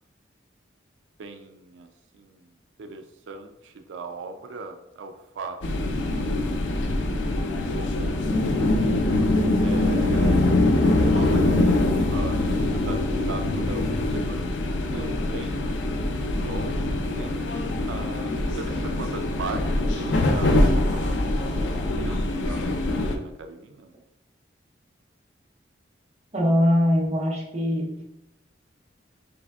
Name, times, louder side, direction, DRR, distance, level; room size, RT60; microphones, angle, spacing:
voice 1, 1.2-2.5 2.8-5.8 6.0-6.6 7.7-8.9 9.6-10.6 11.1-17.3 17.8-23.9, right 3 dB, 85° right, 6 dB, 0.4 m, -39 dB
sound 1, 5.6-23.2, left 2 dB, 90° left, 0.5 m, -23 dB
voice 2, 26.3-28.0, equal, 35° right, -1 dB, 0.8 m, -22 dB
5.1 x 3.3 x 2.3 m, 0.83 s
head